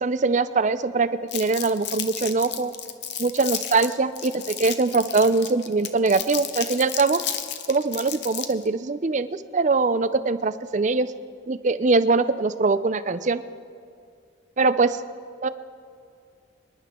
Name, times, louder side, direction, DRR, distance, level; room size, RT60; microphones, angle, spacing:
voice 1, 0.0-2.7 3.2-7.2 7.7-11.1 11.5-13.4 14.6-15.0 15.4-15.5, right 3 dB, 35° right, 13 dB, 0.5 m, -22 dB
Crumpling crinkling, 1.3-8.7, left 10 dB, 55° left, 0.8 m, -32 dB
25.5 x 11.0 x 3.7 m, 2.3 s
head